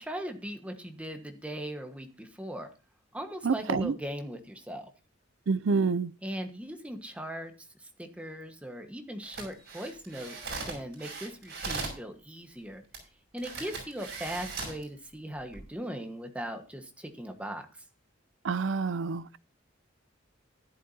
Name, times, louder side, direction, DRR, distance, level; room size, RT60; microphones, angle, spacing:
voice 1, 0.0-2.7 3.1-4.9 6.2-7.5 7.8-12.8 13.3-17.7, equal, 5° right, 1.4 m, -39 dB
voice 2, 3.4-3.9 5.5-6.1 18.4-19.4, right 4 dB, 85° right, 0.5 m, -28 dB
sound 1, 9.2-12.0 12.9-13.0 13.4-14.8 15.4-15.6, right 3 dB, 60° right, 5.9 m, -39 dB
14.5 x 11.0 x 2.8 m
head